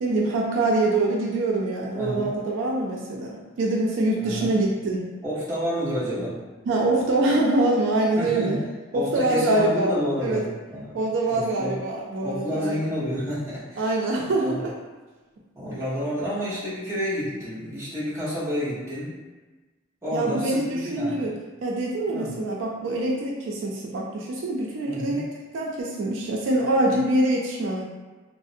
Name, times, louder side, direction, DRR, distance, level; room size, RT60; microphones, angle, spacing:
voice 1, 0.0-5.0 6.7-8.6 8.9-10.0 10.2-10.4 10.9-12.8 13.8-14.7 20.1-21.3 21.6-25.2 25.5-27.8, right 2 dB, 75° right, -2 dB, 0.4 m, -24 dB
voice 2, 2.0-2.3 4.2-4.5 5.2-6.4 8.1-8.6 8.9-11.0 11.3-11.7 12.2-14.6 15.5-19.2 20.0-21.3 22.1-22.4 24.9-25.2, equal, 15° right, -12 dB, 0.9 m, -30 dB
2.5 x 2.0 x 2.5 m, 1.2 s
head